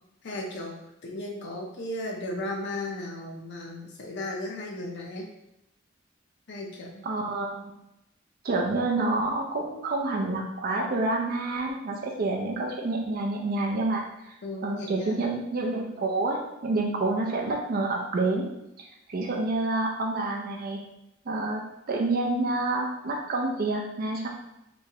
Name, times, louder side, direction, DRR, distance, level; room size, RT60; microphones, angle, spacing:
voice 1, 0.2-0.7 1.0-5.3 6.5-7.0 14.4-15.3, left 1 dB, 60° left, -1 dB, 0.5 m, -35 dB
voice 2, 7.0-7.7 8.4-14.0 14.6-18.5 18.8-20.8 21.3-21.6 21.9-24.3, right 2 dB, 45° right, 0 dB, 0.4 m, -28 dB
3.4 x 3.0 x 2.8 m, 0.87 s
head